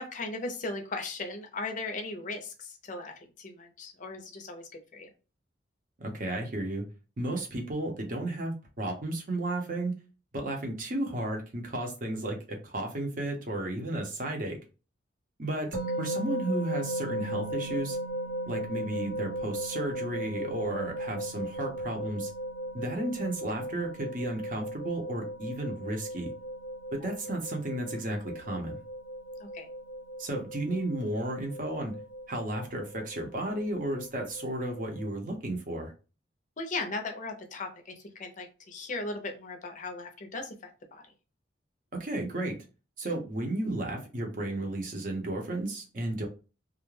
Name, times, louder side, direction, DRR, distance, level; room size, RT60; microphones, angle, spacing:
voice 1, 0.0-5.1 27.0-27.1 29.4-29.7 36.6-40.5 40.9-41.0, left 3 dB, 45° left, 5 dB, 0.5 m, -37 dB
voice 2, 6.0-6.8 7.2-9.9 10.3-14.6 15.4-15.7 16.0-18.0 18.5-22.3 22.7-26.3 26.9-28.8 30.2-31.9 32.3-35.9 42.0-42.6 43.0-46.3, right 1 dB, 45° right, 2 dB, 0.7 m, -33 dB
sound 1, 15.7-35.1, right 1 dB, 80° right, 1.0 m, -37 dB
2.4 x 2.1 x 3.1 m, 0.33 s
head